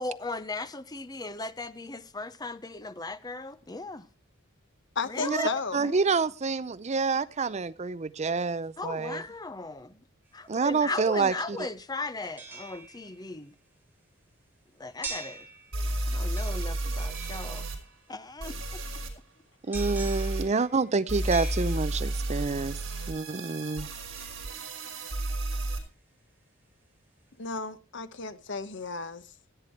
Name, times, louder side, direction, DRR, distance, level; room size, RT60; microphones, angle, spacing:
voice 1, 0.0-4.0 5.1-6.0 8.8-9.9 10.3-13.5 14.8-15.5 16.1-17.6 18.1-18.5, left 2 dB, 20° left, 0.8 m, -37 dB
voice 2, 4.9-5.9 27.4-29.2, left 4 dB, 60° left, 1.1 m, -34 dB
voice 3, 5.7-9.2 10.5-11.7 19.7-22.8 23.1-23.9, right 4 dB, 35° right, 0.5 m, -28 dB
sound 1, 10.3-10.4 12.2-13.4 15.0-16.0 16.4-18.1 19.7-22.3 24.2-25.3 25.8-25.9, right 3 dB, 10° right, 3.3 m, -44 dB
sound 2, 15.1-15.2 15.7-17.8 18.4-19.1 19.7-20.4 21.1-25.8, right 1 dB, 70° right, 4.7 m, -32 dB
16.0 x 9.3 x 4.5 m
head